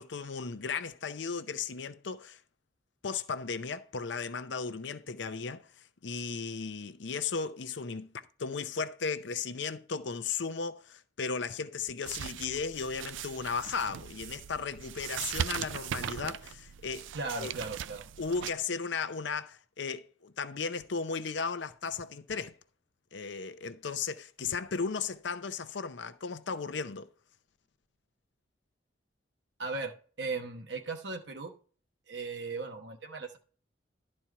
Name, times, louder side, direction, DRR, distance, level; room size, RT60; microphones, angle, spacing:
voice 1, 0.0-2.4 3.0-5.7 6.0-8.1 8.4-17.1 17.4-17.5 18.2-22.5 23.1-27.1, left 5 dB, 75° left, 0.6 m, -35 dB
sound 1, 12.0-18.5, right 9 dB, 85° right, 0.4 m, -39 dB
voice 2, 17.1-18.1 29.6-31.5 32.1-33.4, right 3 dB, 65° right, 1.1 m, -37 dB
11.5 x 4.4 x 4.5 m
head